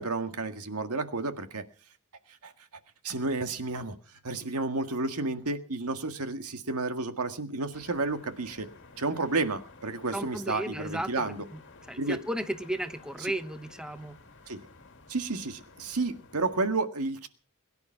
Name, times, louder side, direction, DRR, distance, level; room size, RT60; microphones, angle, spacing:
voice 1, 0.0-1.6 2.4-2.5 3.0-4.0 4.2-8.7 9.0-11.4 12.0-12.2 14.5-14.6 15.1-17.3, right 3 dB, 90° right, 8 dB, 1.8 m, -31 dB
sound 1, 7.7-16.7, left 3 dB, 60° left, 2.3 m, -53 dB
voice 2, 10.1-11.6 11.9-14.2, right 1 dB, 5° right, 10 dB, 0.9 m, -35 dB
22.0 x 10.5 x 5.7 m, 0.40 s
head